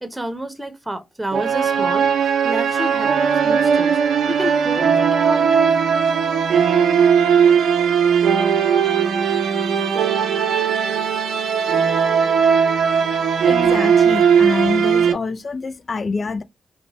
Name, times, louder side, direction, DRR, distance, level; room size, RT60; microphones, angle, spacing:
voice 1, 0.0-2.1 2.4-4.0 4.3-5.8, right 1 dB, 10° right, 0.8 m, -29 dB
sound 1, 1.3-15.1, right 7 dB, 80° right, 0.5 m, -18 dB
voice 2, 12.9-16.4, left 4 dB, 50° left, 0.4 m, -26 dB
2.6 x 2.2 x 2.9 m
supercardioid pair, 45°, 0 cm